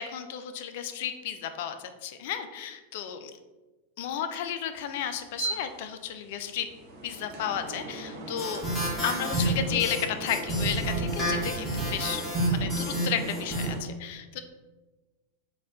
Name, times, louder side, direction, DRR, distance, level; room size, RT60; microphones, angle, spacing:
voice 1, 0.0-3.3 4.0-6.7 7.0-8.6 9.0-14.4, left 9 dB, 50° left, 8 dB, 0.3 m, -33 dB
sound 1, 4.7-13.8, right 2 dB, 45° right, 0.7 m, -39 dB
sound 2, 8.4-13.7, right 1 dB, 5° left, 1.3 m, -29 dB
4.1 x 2.3 x 3.7 m, 1.2 s
figure-of-eight pair, 90°, 0 cm